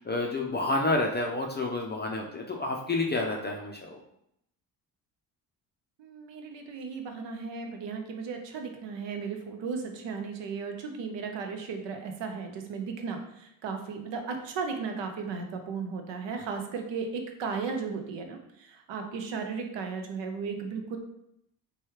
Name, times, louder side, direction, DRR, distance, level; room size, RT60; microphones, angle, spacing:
voice 1, 0.0-4.0, left 2 dB, 20° left, 0 dB, 0.5 m, -29 dB
voice 2, 6.0-21.0, right 5 dB, 65° right, 5 dB, 0.7 m, -35 dB
3.1 x 2.3 x 3.1 m, 0.77 s
supercardioid pair, 55°, 48 cm